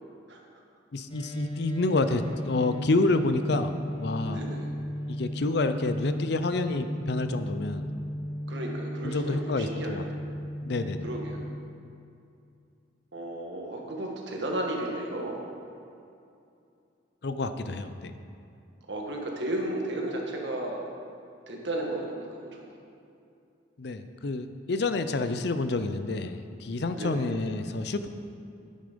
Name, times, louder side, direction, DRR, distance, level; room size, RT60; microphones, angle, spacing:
voice 1, 0.9-4.4 5.1-7.9 9.0-10.0 10.6-11.1 17.2-18.1 23.8-28.1, left 2 dB, 60° left, 10 dB, 0.5 m, -28 dB
sound 1, 1.1-11.6, equal, 25° left, 1.1 m, -35 dB
voice 2, 4.3-4.7 8.5-10.1 11.0-11.5 13.1-15.5 18.9-20.8 21.5-22.7 26.9-27.3, right 1 dB, 75° right, 0 dB, 1.6 m, -34 dB
9.2 x 8.9 x 5.2 m, 2.6 s
head